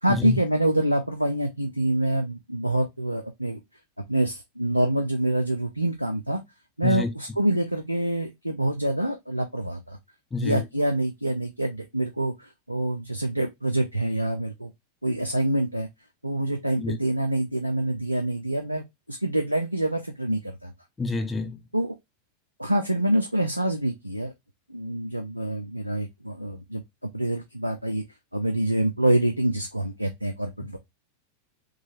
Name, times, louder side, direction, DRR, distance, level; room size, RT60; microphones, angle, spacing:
voice 1, 0.0-3.6 4.1-6.4 6.8-10.0 10.4-14.7 15.0-15.9 16.2-20.7 21.7-22.0 22.6-24.3 24.7-26.8 27.1-28.0 28.3-30.8, right 1 dB, 90° right, 0.5 m, -26 dB
voice 2, 10.3-10.6 16.8-17.0 21.0-21.6, left 3 dB, 15° left, 0.8 m, -28 dB
3.9 x 3.0 x 2.5 m
figure-of-eight pair, 90°, 0 cm